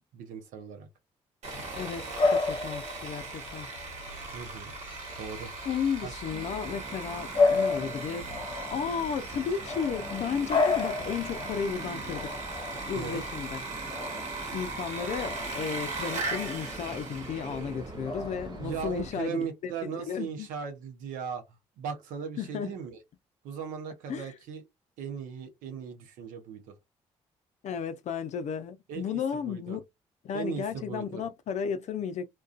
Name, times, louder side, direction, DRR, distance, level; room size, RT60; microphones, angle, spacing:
voice 1, 0.1-0.9 4.3-4.7 5.2-5.5 6.0-6.2 7.8-8.0 12.9-13.2 18.6-21.4 21.8-23.0 23.4-24.6 25.0-26.7 28.9-29.8 30.3-31.2, right 7 dB, 80° right, 0.6 m, -38 dB
Sawing, 1.4-17.9, right 3 dB, 60° right, 1.1 m, -39 dB
Bark / Bird vocalization bird call bird song, 1.5-19.1, left 4 dB, 40° left, 0.8 m, -33 dB
voice 2, 1.7-3.7 5.6-12.4 12.9-13.6 14.5-20.5 22.4-22.8 24.1-24.3 27.6-29.8 30.2-32.2, left 7 dB, 60° left, 0.4 m, -34 dB
sound 1, 6.3-19.1, right 4 dB, 35° right, 0.6 m, -45 dB
2.4 x 2.2 x 2.4 m
supercardioid pair, 55°, 13 cm